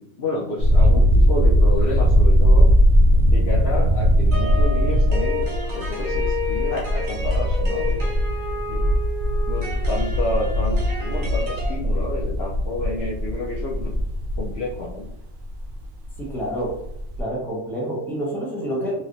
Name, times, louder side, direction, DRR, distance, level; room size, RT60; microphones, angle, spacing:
voice 1, 0.0-2.7 3.2-8.0 8.7-8.8 9.5-13.9 14.4-15.1, left 2 dB, 60° left, -5 dB, 0.7 m, -30 dB
sound 1, 0.6-16.3 16.7-17.2, equal, 65° right, 0.5 m, -19 dB
sound 2, 4.3-11.7, left 2 dB, 40° right, 0.9 m, -31 dB
voice 2, 16.2-16.7 17.2-19.0, equal, ahead, -5 dB, 0.8 m, -27 dB
3.1 x 2.9 x 2.6 m, 0.76 s
omnidirectional pair, 1.5 m